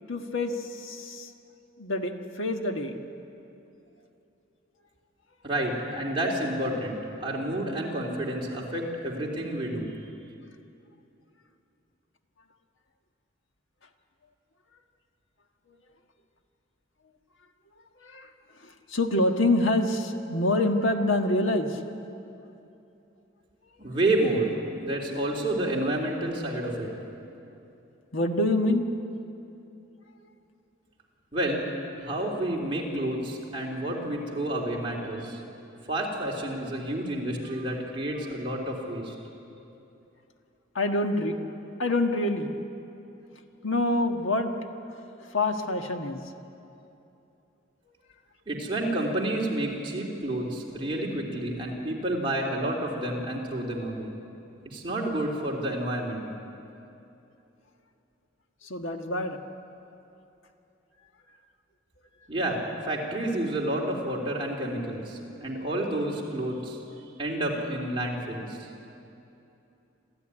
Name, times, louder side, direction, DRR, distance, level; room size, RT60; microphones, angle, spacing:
voice 1, 0.1-1.3 1.8-3.0 18.0-18.3 18.6-21.8 28.1-29.0 40.7-41.4 41.8-42.6 43.6-44.5 44.9-46.2 58.6-59.4, left 2 dB, 80° left, 5 dB, 1.5 m, -26 dB
voice 2, 5.4-9.9 23.8-26.9 31.3-31.7 32.0-35.4 35.9-39.1 48.5-54.1 54.6-56.2 62.3-66.8 67.2-68.6, right 1 dB, 25° right, -3 dB, 3.4 m, -29 dB
27.0 x 14.5 x 9.9 m, 2.8 s
head